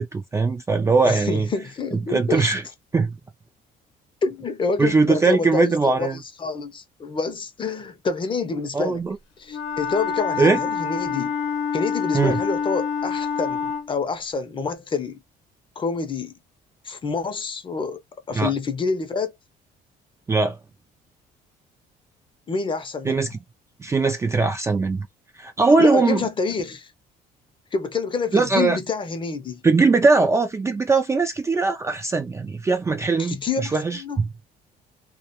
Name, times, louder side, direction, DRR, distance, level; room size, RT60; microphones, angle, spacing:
voice 1, 0.0-1.5 2.1-2.6 2.9-3.2 4.8-6.2 8.7-9.2 10.4-10.6 12.1-12.4 18.3-18.5 20.3-20.6 23.1-23.4 23.8-25.1 25.4-26.2 28.3-28.8 29.6-34.3, right 4 dB, 15° right, 0.3 m, -20 dB
voice 2, 1.0-2.5 4.2-9.0 9.4-11.3 11.7-15.2 15.8-16.3 16.8-18.0 18.3-19.3 22.5-23.3 25.8-26.9 27.7-29.6 33.2-34.2, left 4 dB, 30° left, 0.6 m, -27 dB
Wind instrument woodwind instrument, 9.5-13.9, left 6 dB, 90° left, 0.7 m, -26 dB
2.2 x 2.2 x 2.9 m
cardioid pair, 110°, 17 cm